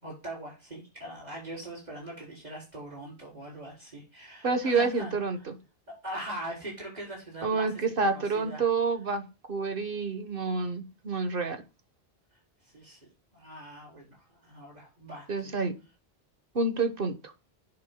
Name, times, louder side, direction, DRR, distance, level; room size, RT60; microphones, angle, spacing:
voice 1, 0.0-5.1 5.9-7.7 8.0-8.6 12.7-13.0 13.3-15.5, right 1 dB, 40° right, -3 dB, 4.4 m, -41 dB
voice 2, 4.4-5.5 7.4-11.6 15.3-15.8 16.5-17.1, right 4 dB, 55° right, 7 dB, 1.3 m, -28 dB
10.5 x 5.6 x 2.2 m, 0.29 s
omnidirectional pair, 1.1 m